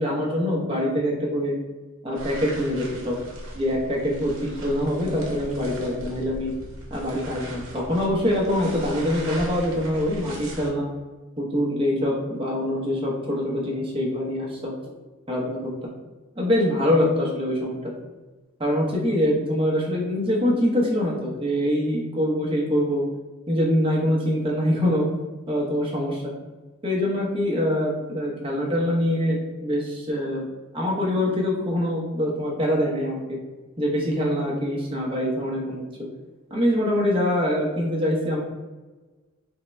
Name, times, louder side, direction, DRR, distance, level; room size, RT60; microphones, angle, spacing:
voice 1, 0.0-1.6 2.0-3.3 3.5-4.3 4.6-6.5 6.9-10.9 11.4-14.7 15.3-16.0 16.4-17.9 18.6-23.0 23.5-25.1 25.5-26.3 26.8-30.5 30.7-33.4 33.8-35.9 36.5-38.4, left 1 dB, 25° right, -4 dB, 0.7 m, -24 dB
sound 1, 2.1-10.7, right 1 dB, 75° right, 0.9 m, -39 dB
3.5 x 2.1 x 4.2 m, 1.3 s
head